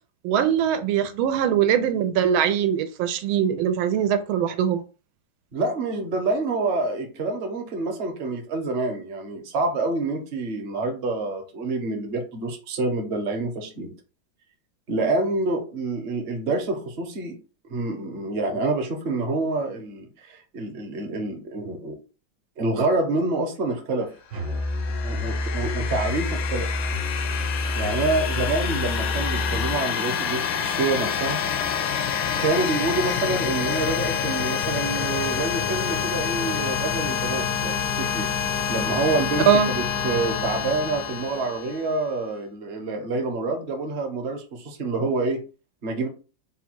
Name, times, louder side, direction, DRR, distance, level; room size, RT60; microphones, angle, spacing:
voice 1, 0.2-4.8 39.5-39.7, right 8 dB, 90° right, 1.4 m, -21 dB
voice 2, 5.5-13.9 14.9-17.4 17.7-22.0 22.6-24.6 25.0-26.7 27.7-31.4 32.4-38.3 38.7-45.4 45.8-46.1, right 3 dB, 45° right, 0.8 m, -27 dB
Musical instrument, 24.3-29.8, left 2 dB, 65° right, 1.3 m, -28 dB
sound 1, 24.4-42.1, left 7 dB, 80° left, 1.3 m, -27 dB
4.1 x 2.2 x 4.4 m
omnidirectional pair, 2.2 m